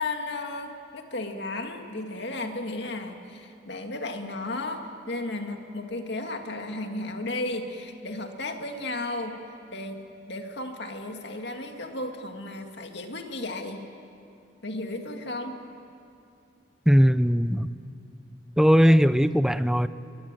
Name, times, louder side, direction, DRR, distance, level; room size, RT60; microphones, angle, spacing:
voice 1, 0.0-9.4 9.7-10.0 10.3-13.8 14.6-15.6, left 2 dB, 60° left, 4 dB, 2.2 m, -34 dB
voice 2, 16.9-17.7 18.6-19.9, equal, 5° right, 13 dB, 0.5 m, -19 dB
22.0 x 22.0 x 9.1 m, 2.5 s
head